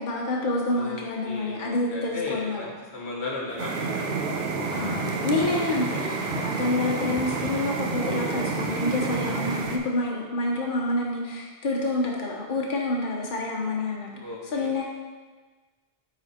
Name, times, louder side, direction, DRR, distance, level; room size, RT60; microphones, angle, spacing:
voice 1, 0.0-2.7 4.7-14.1 14.5-14.8, left 2 dB, 50° left, -2 dB, 1.2 m, -28 dB
voice 2, 0.7-4.1 14.2-14.7, left 3 dB, 85° left, -2 dB, 1.6 m, -36 dB
sound 1, 3.5-9.6, equal, 5° right, 0.5 m, -37 dB
sound 2, 3.6-9.8, right 4 dB, 60° right, 0.9 m, -30 dB
9.5 x 4.1 x 4.3 m, 1.4 s
omnidirectional pair, 1.1 m